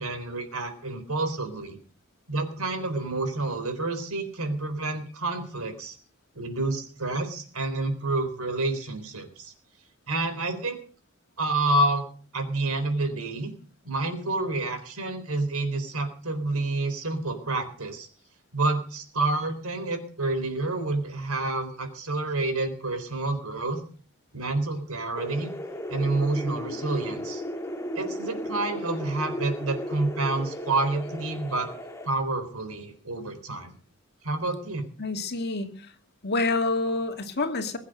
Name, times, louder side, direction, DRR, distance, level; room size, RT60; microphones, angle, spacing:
voice 1, 0.0-1.8 2.3-6.0 6.4-9.5 10.1-10.8 11.4-12.1 12.3-13.5 13.8-18.1 18.5-23.8 24.3-25.5 25.9-27.4 27.9-31.7 32.1-33.7 34.2-34.8, right 2 dB, 85° right, 8 dB, 3.9 m, -28 dB
sound 1, 25.1-32.1, equal, 15° left, 1.8 m, -35 dB
voice 2, 35.0-35.9 36.2-37.8, left 3 dB, 50° left, 5 dB, 2.3 m, -27 dB
21.5 x 8.6 x 6.6 m, 0.43 s
head